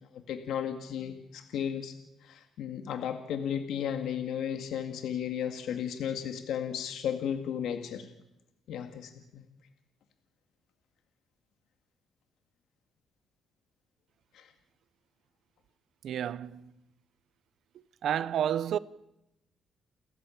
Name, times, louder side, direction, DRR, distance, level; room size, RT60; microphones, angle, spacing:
voice 1, 0.1-1.9 2.2-8.1 8.7-9.5 14.3-14.5, left 9 dB, 80° left, 2.0 m, -34 dB
voice 2, 16.0-16.7 18.0-18.8, right 10 dB, 70° right, 0.8 m, -30 dB
29.5 x 14.5 x 7.3 m
cardioid pair, 90°, 0 cm